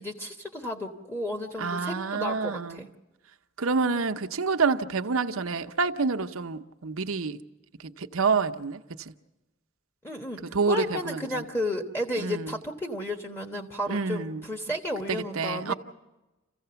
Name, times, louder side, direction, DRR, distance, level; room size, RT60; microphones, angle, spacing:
voice 1, 0.0-2.9 10.0-15.7, left 1 dB, 10° left, 1.2 m, -33 dB
voice 2, 1.6-2.8 3.6-7.4 7.8-9.1 10.5-11.4 12.2-12.5 13.9-14.5 15.1-15.7, right 4 dB, 75° right, 0.8 m, -28 dB
27.5 x 15.5 x 6.9 m
head